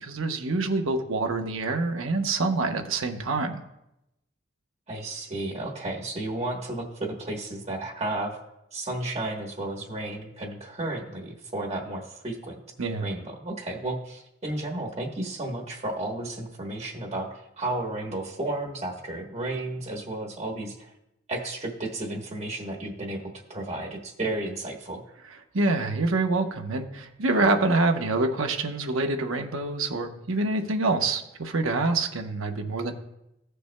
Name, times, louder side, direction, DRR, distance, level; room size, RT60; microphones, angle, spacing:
voice 1, 0.0-3.6 12.8-13.1 25.5-32.9, right 3 dB, 80° right, 4 dB, 0.9 m, -26 dB
voice 2, 4.9-8.4 8.7-12.6 13.0-20.9 21.3-25.0, right 2 dB, 30° right, -1 dB, 1.1 m, -33 dB
16.0 x 6.7 x 2.2 m, 0.86 s
head